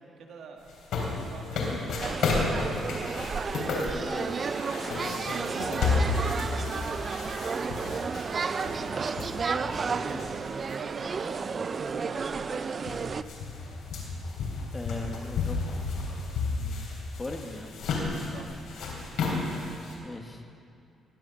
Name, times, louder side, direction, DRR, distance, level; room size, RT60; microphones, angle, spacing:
voice 1, 0.2-1.6 4.8-7.3 8.3-9.1 9.5-12.5 18.3-18.6, right 5 dB, 70° right, 3 dB, 1.6 m, -45 dB
sound 1, 0.7-10.7 11.2-11.3 12.2-12.3 12.5-19.9, left 3 dB, 80° left, 3.3 m, -32 dB
sound 2, 2.0-13.2, right 5 dB, 40° right, 0.5 m, -32 dB
voice 2, 4.0-5.2 6.0-6.2 10.0-10.2 14.7-15.8 16.6-16.9 17.2-17.7 20.0-20.4, left 2 dB, 20° left, 4 dB, 1.5 m, -40 dB
20.5 x 7.7 x 7.0 m, 2.4 s
cardioid pair, 90°, 0 cm